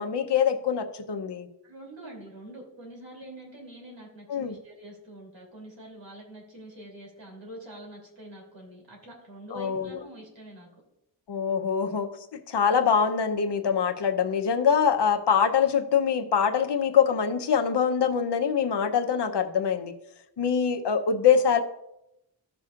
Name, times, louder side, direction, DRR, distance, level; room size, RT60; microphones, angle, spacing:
voice 1, 0.0-1.5 4.3-4.5 9.5-10.0 11.3-19.9 20.4-21.6, left 7 dB, 65° left, 6 dB, 0.8 m, -24 dB
voice 2, 1.6-10.7, right 1 dB, 80° right, -1 dB, 3.0 m, -45 dB
15.0 x 6.1 x 2.5 m, 0.85 s
wide cardioid pair, 120°, 44 cm